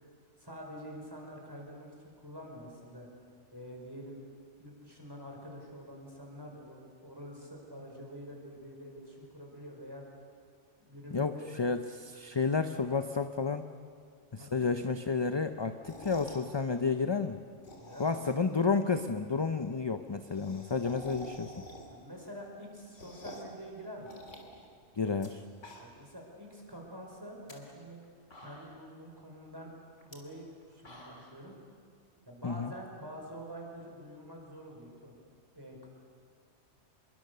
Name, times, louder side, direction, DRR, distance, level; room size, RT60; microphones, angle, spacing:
voice 1, 0.4-3.1 3.5-4.2 4.6-10.0 10.9-11.5 14.4-14.8 17.8-18.3 21.9-24.1 25.8-28.0 28.4-29.7 30.0-31.5 32.3-35.1 35.5-35.9, equal, 20° right, 0 dB, 4.9 m, -47 dB
voice 2, 11.1-13.6 14.3-17.4 18.0-21.5 25.0-25.4 32.4-32.7, left 4 dB, 30° left, 8 dB, 0.6 m, -31 dB
sound 1, 15.7-16.5 17.5-18.6 18.9-19.0 19.2-19.3 19.6-19.7 19.9-22.1 22.5-23.6 24.1-25.3 25.5-26.1 26.5-26.6 27.3-27.5 28.0-28.1 28.3-28.9 30.0-30.2 30.6-31.4, equal, 90° left, 3.5 m, -49 dB
27.0 x 22.5 x 6.8 m, 2.2 s
omnidirectional pair, 1.2 m